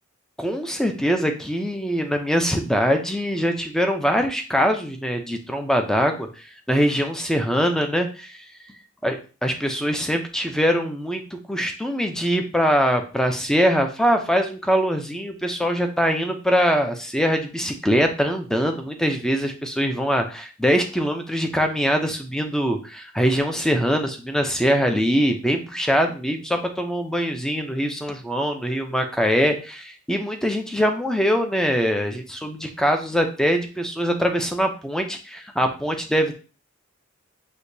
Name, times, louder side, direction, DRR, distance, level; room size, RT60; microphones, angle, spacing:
voice 1, 0.4-8.5 9.0-36.3, equal, 5° left, 5 dB, 0.6 m, -23 dB
6.3 x 2.9 x 2.7 m, 0.35 s
head